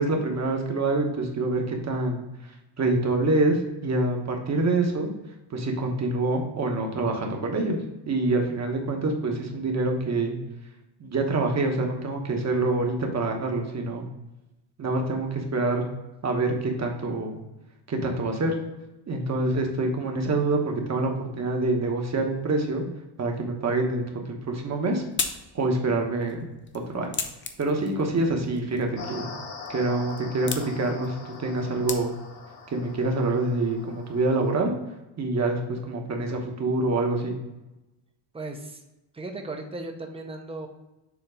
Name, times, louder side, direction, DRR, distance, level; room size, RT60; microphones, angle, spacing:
voice 1, 0.0-2.2 2.8-5.1 5.5-7.8 8.1-10.4 11.0-14.0 14.8-15.9 16.2-17.4 17.9-18.5 19.1-22.8 23.2-25.0 25.5-26.5 26.9-27.2 27.6-29.3 29.7-32.1 32.7-34.7 35.2-37.3, right 2 dB, 35° right, 2 dB, 1.1 m, -26 dB
sound 1, 24.5-32.5, left 5 dB, 25° left, 0.5 m, -38 dB
sound 2, 29.0-34.5, left 4 dB, 85° left, 1.9 m, -42 dB
voice 2, 38.3-38.8 39.1-40.7, right 2 dB, 10° right, 4 dB, 0.7 m, -36 dB
7.1 x 3.0 x 4.9 m, 1.0 s
cardioid pair, 145°, 46 cm